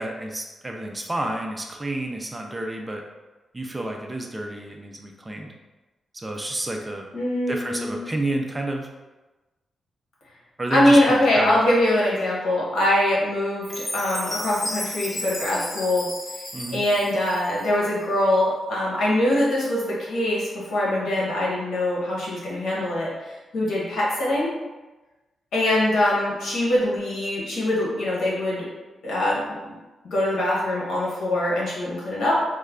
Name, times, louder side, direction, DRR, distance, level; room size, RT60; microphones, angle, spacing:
voice 1, 0.0-3.0 3.5-5.5 6.1-7.1 7.5-8.9 10.6-11.6 16.5-16.8, right 1 dB, 15° right, 2 dB, 0.3 m, -30 dB
voice 2, 7.1-8.0 10.7-16.1 16.7-24.5 25.5-28.7 29.0-29.8 30.1-32.4, left 1 dB, 80° left, -5 dB, 1.1 m, -23 dB
Chime, 13.6-17.8, left 1 dB, 25° left, 0.8 m, -33 dB
3.1 x 2.2 x 3.6 m, 1.1 s
wide cardioid pair, 170°, 0 cm